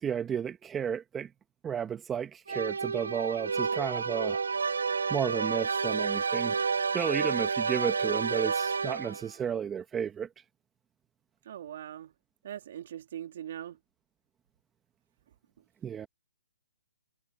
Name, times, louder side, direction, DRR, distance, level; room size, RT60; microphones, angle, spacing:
voice 1, 0.0-1.3 1.6-4.4 5.1-6.6 6.9-10.3 15.8-16.1, right 8 dB, 10° right, 1.2 m, -32 dB
sound 1, 2.5-9.3, right 5 dB, 80° right, 0.4 m, -30 dB
voice 2, 11.4-12.1 12.4-13.8, right 11 dB, 45° right, 2.7 m, -41 dB
hypercardioid pair, 160°, 0 cm